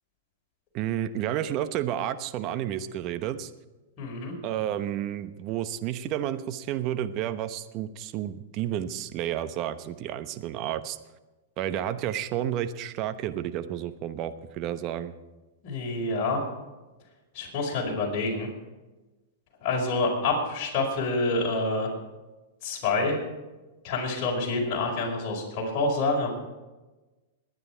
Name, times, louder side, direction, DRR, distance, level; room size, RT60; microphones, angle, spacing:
voice 1, 0.7-3.5 4.4-11.0 11.6-15.1, right 11 dB, 40° right, 11 dB, 1.0 m, -31 dB
voice 2, 4.0-4.3 15.6-16.4 17.3-18.5 19.6-21.9 22.6-23.2 23.8-26.3, left 3 dB, 40° left, -2 dB, 5.0 m, -27 dB
21.5 x 9.6 x 4.6 m, 1.1 s
hypercardioid pair, 115°, 0 cm